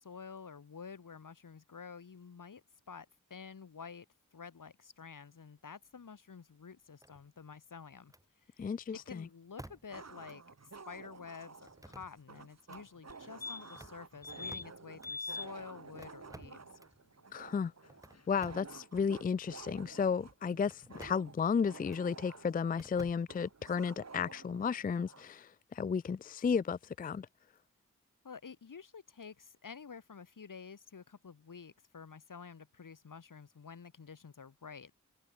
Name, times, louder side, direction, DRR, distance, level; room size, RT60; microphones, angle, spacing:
voice 1, 0.0-4.1 4.3-8.1 8.5-8.7 9.1-10.4 10.9-16.7 28.2-34.9, left 6 dB, 80° left, 4.2 m, -50 dB
sound 1, 7.0-7.5 8.1-8.3 9.6-10.0 10.3-10.4 11.7-12.3 12.6-12.8 13.6-15.1 16.0-17.0 17.9-18.8 19.5-19.7 20.6-21.3 21.9-22.0 22.8-23.6, right 1 dB, 10° right, 2.6 m, -54 dB
voice 2, 8.6-9.3 17.3-17.7 18.3-27.3, left 6 dB, 30° left, 0.4 m, -33 dB
sound 2, 8.9-9.0 9.9-25.3, right 4 dB, 55° right, 2.5 m, -52 dB
sound 3, 13.1-13.2 13.4-13.9 14.2-14.6 15.0-15.5 17.9-18.0 18.1-18.2, left 4 dB, 50° left, 2.7 m, -41 dB
cardioid pair, 40°, 32 cm